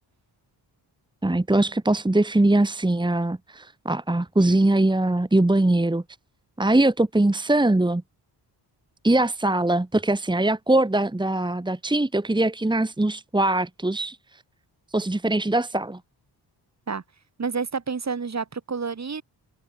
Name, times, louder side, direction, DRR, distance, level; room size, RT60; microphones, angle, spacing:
voice 1, 1.2-6.0 6.6-8.0 9.0-14.2 14.9-16.0, right 2 dB, 10° right, 2.4 m, -22 dB
voice 2, 17.4-19.2, right 5 dB, 40° right, 6.0 m, -29 dB
wide cardioid pair, 130°, 42 cm